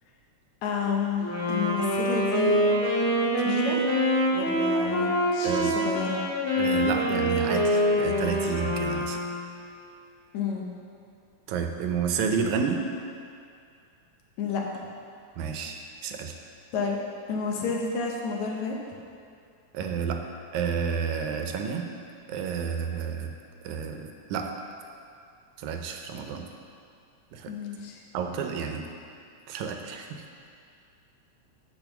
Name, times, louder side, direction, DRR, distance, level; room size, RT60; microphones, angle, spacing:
voice 1, 0.6-2.6 3.4-3.8 4.3-6.2 10.3-10.7 14.4-14.6 16.7-17.0 17.3-18.8 27.5-28.0, left 5 dB, 75° left, -1 dB, 2.3 m, -30 dB
Wind instrument woodwind instrument, 1.2-9.5, equal, 30° left, 1.9 m, -25 dB
voice 2, 6.5-9.2 11.5-12.8 15.4-16.4 19.7-20.2 20.5-21.9 22.3-23.3 23.6-24.5 25.6-26.5 27.3-27.5 28.1-28.9 29.5-30.2, right 6 dB, 85° right, 4 dB, 2.1 m, -30 dB
9.2 x 5.3 x 6.0 m, 2.4 s
omnidirectional pair, 3.4 m